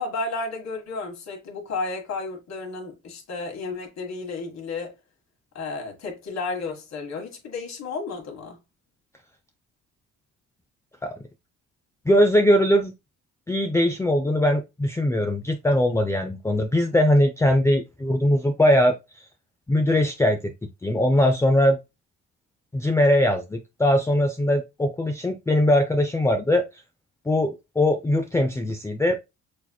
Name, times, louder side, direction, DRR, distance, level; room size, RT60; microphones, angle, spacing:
voice 1, 0.0-4.9 5.5-8.6, left 3 dB, 60° left, 1.7 m, -32 dB
voice 2, 12.1-12.9 13.5-19.0 19.7-20.5 20.8-21.8 22.7-26.7 27.3-29.2, left 1 dB, 10° left, 0.4 m, -21 dB
6.3 x 2.9 x 2.3 m
cardioid pair, 90°, 30 cm